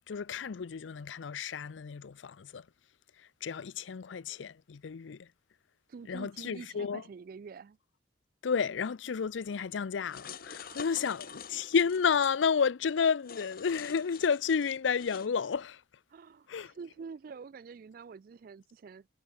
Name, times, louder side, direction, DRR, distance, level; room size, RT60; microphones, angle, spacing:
voice 1, 0.1-2.7 3.2-5.3 6.1-7.0 8.4-15.8 16.5-16.7, left 6 dB, 90° left, 0.5 m, -31 dB
voice 2, 5.9-7.8 10.6-11.1 16.1-19.1, right 5 dB, 50° right, 0.3 m, -47 dB
sound 1, 10.1-12.3 13.2-15.3, left 6 dB, 50° left, 1.2 m, -47 dB
head